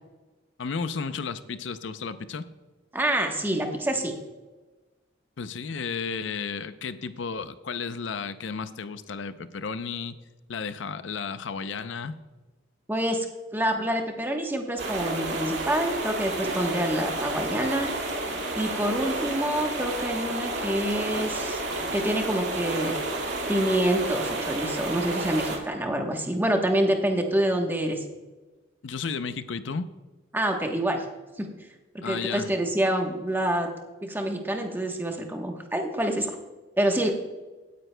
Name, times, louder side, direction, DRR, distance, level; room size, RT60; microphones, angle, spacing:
voice 1, 0.6-2.4 5.4-10.2 10.5-12.2 28.8-29.9 32.0-32.5, left 5 dB, 70° left, 12 dB, 0.5 m, -33 dB
voice 2, 2.9-4.1 12.9-13.3 13.5-17.9 18.6-21.6 21.9-22.9 23.5-28.0 30.3-31.0 31.4-31.5 32.0-33.7 34.0-36.4 36.8-37.1, right 1 dB, 10° right, 3 dB, 1.0 m, -27 dB
sound 1, 14.8-25.6, right 2 dB, 65° right, 2.1 m, -31 dB
17.0 x 9.3 x 2.2 m, 1.2 s
head